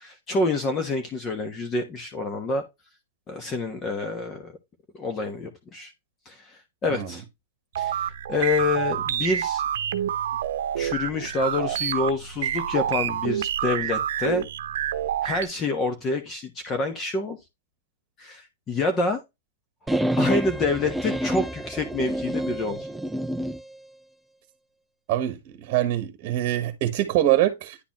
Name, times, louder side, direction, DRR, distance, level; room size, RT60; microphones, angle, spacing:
voice 1, 0.0-2.6 3.3-4.5 4.9-5.9 6.2-7.2 7.8-9.6 9.9-10.0 10.8-14.5 15.2-17.4 18.2-19.2 20.2-22.9, left 3 dB, 25° left, 1.2 m, -27 dB
sound 1, 7.7-15.5, right 10 dB, 75° right, 0.8 m, -28 dB
sound 2, 19.9-23.6, equal, 5° right, 0.4 m, -27 dB
voice 2, 25.1-27.8, right 13 dB, 40° right, 1.2 m, -24 dB
10.0 x 4.0 x 3.0 m
hypercardioid pair, 135°, 0 cm